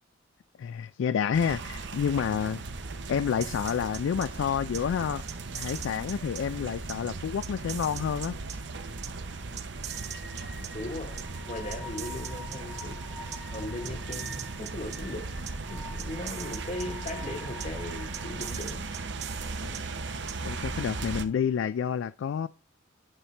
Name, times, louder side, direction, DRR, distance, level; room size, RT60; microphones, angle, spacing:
voice 1, 0.6-2.6 3.1-5.2 5.5-8.4 19.6-19.8 20.4-22.5, left 7 dB, 80° left, 0.3 m, -29 dB
sound 1, 1.3-21.2, right 3 dB, 65° right, 0.9 m, -38 dB
sound 2, 3.4-4.3 4.7-4.8 5.3-6.4 6.9-7.0 7.4-8.6 9.0-9.1 9.6-10.7 11.2-11.3 11.7-12.8 13.3-13.4 13.9-15.0 15.5-15.6 16.0-17.1 17.6-17.7 18.1-19.8 20.3-20.4, right 10 dB, 35° right, 0.7 m, -41 dB
sound 3, 4.5-20.4, left 2 dB, 5° right, 0.9 m, -49 dB
voice 2, 10.6-13.0 13.5-15.3 15.7-18.9, left 2 dB, 40° left, 1.2 m, -38 dB
9.8 x 5.8 x 3.3 m
head